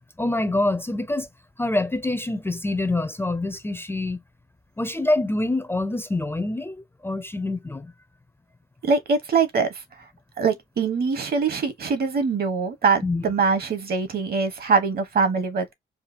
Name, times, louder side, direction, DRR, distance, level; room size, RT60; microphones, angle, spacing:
voice 1, 0.2-1.3 1.6-4.2 4.8-7.9 13.0-13.3, left 2 dB, 10° left, 0.5 m, -26 dB
voice 2, 8.8-9.7 10.4-15.7, right 5 dB, 50° right, 1.3 m, -23 dB
4.9 x 2.4 x 2.8 m
cardioid pair, 105°, 20 cm